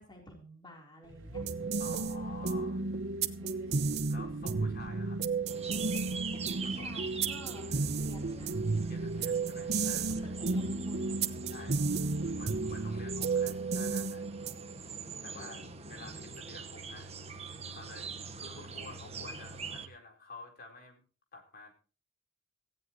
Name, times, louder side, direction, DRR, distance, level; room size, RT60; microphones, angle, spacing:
voice 1, 0.0-1.8 3.4-3.9 6.6-8.6 10.1-11.3 15.1-15.7, left 1 dB, 25° left, 1 dB, 3.8 m, -52 dB
sound 1, 1.0-12.6 13.0-13.1, right 1 dB, 85° right, 1.9 m, -50 dB
sound 2, 1.3-14.8, right 4 dB, 55° right, 1.0 m, -33 dB
voice 2, 1.8-2.8 4.1-5.2 6.6-7.0 8.9-10.3 11.5-11.9 12.4-14.2 15.2-15.6 15.9-17.1 17.7-21.0 21.3-21.7, left 3 dB, 50° left, 3 dB, 4.2 m, -50 dB
sound 3, 5.5-19.9, right 5 dB, 35° right, 1.4 m, -44 dB
17.5 x 16.0 x 3.1 m, 0.35 s
head